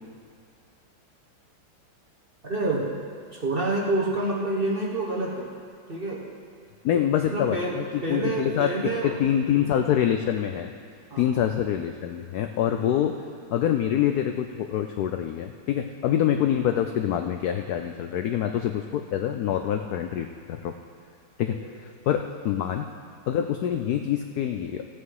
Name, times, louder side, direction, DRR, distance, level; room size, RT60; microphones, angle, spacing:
voice 1, 2.4-2.9 3.3-5.5 5.9-6.2 7.3-9.1 11.1-11.3 12.8-13.0 21.5-21.6, right 2 dB, 35° right, -2 dB, 1.1 m, -28 dB
voice 2, 6.8-8.7 9.0-10.7 11.2-13.2 13.5-20.7 21.4-21.5 22.1-22.9 23.3-24.9, left 10 dB, 75° left, 6 dB, 0.9 m, -25 dB
15.0 x 8.5 x 4.8 m, 2.3 s
omnidirectional pair, 2.1 m